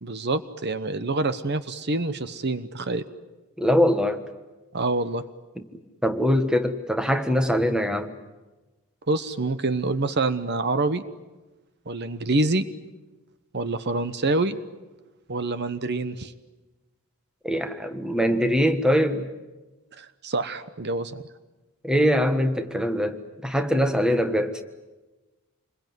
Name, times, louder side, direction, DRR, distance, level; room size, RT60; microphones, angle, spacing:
voice 1, 0.0-3.0 4.7-5.2 9.1-11.0 11.9-12.7 13.5-14.6 15.3-16.3 20.0-21.2, right 2 dB, 50° right, 12 dB, 1.0 m, -26 dB
voice 2, 3.6-4.2 6.0-8.1 17.4-19.3 21.8-24.6, equal, 5° right, 8 dB, 1.5 m, -22 dB
27.5 x 22.0 x 9.4 m, 1.1 s
head